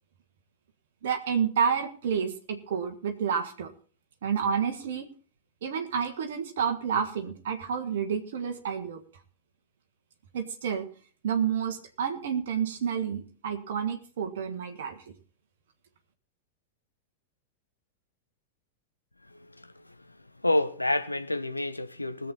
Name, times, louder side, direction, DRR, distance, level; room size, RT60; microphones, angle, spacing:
voice 1, 1.0-3.7 4.2-5.1 5.6-9.0 10.3-10.9 11.2-15.0, right 7 dB, 60° right, 1.5 m, -29 dB
voice 2, 19.3-20.2 20.4-22.3, left 1 dB, 85° left, 0.7 m, -29 dB
20.0 x 7.7 x 4.0 m
figure-of-eight pair, 90°, 0 cm